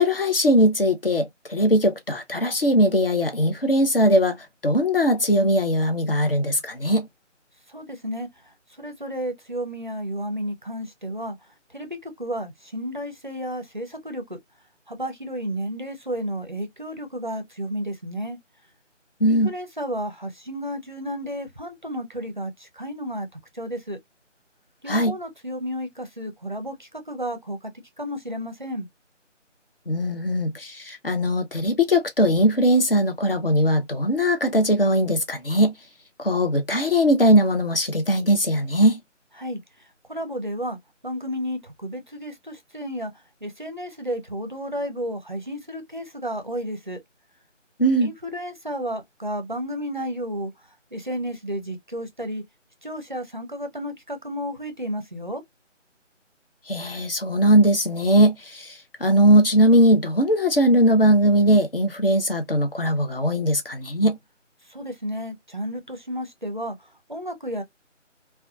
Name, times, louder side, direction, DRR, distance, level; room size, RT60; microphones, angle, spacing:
voice 1, 0.0-4.4 4.6-7.1 19.2-19.5 24.9-25.2 29.9-35.7 36.2-39.0 47.8-48.1 56.7-64.2, equal, 50° left, 0.6 m, -20 dB
voice 2, 7.7-8.3 8.8-11.4 11.7-14.4 14.9-18.4 19.2-23.3 23.5-24.0 24.8-27.7 28.0-28.9 39.4-39.6 40.1-40.8 41.0-43.1 43.4-47.0 48.0-50.5 50.9-52.4 52.8-55.4 64.7-66.8 67.1-67.6, equal, 40° right, 0.5 m, -32 dB
2.8 x 2.2 x 2.2 m
figure-of-eight pair, 165°, 37 cm